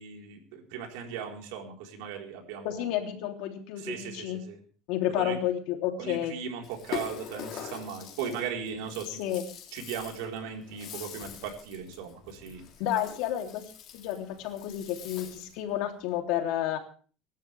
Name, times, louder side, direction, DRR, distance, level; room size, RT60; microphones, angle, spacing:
voice 1, 0.0-3.0 3.8-4.6 5.2-5.4 6.0-9.2 9.7-12.7, right 7 dB, 90° right, 2 dB, 4.4 m, -38 dB
voice 2, 2.6-4.4 4.9-6.4 9.1-9.4 12.8-16.8, left 11 dB, 70° left, 4 dB, 3.2 m, -31 dB
Rattle (instrument), 6.6-15.6, left 9 dB, 50° left, 3.3 m, -43 dB
25.5 x 12.0 x 3.5 m, 0.41 s
cardioid pair, 145°, 0 cm